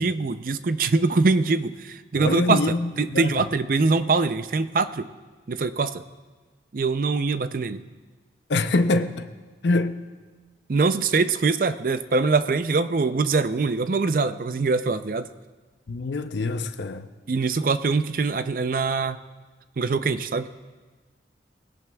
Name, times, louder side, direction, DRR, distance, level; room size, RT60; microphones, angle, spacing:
voice 1, 0.0-2.6 3.0-5.1 5.5-6.0 6.7-7.8 10.7-15.3 17.3-19.2 19.8-20.5, right 4 dB, 50° right, 0.4 m, -23 dB
voice 2, 2.2-3.4 8.5-9.3 9.6-10.0 15.9-17.1, left 2 dB, 75° left, 0.6 m, -24 dB
20.5 x 16.5 x 2.3 m
head